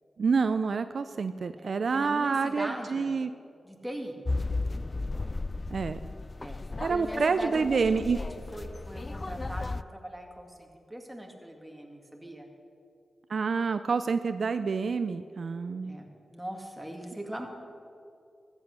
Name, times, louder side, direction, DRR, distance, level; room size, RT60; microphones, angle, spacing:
voice 1, 0.2-3.3 5.7-6.1 6.8-8.2 13.3-16.0, right 5 dB, 65° right, 11 dB, 0.4 m, -28 dB
voice 2, 1.6-3.1 3.6-4.2 6.4-6.6 6.9-12.5 15.8-17.5, right 1 dB, 10° right, 2 dB, 2.1 m, -41 dB
sound 1, 4.2-9.8, left 3 dB, 35° left, 0.3 m, -35 dB
13.5 x 8.2 x 6.6 m, 2.5 s
cardioid pair, 55°, 0 cm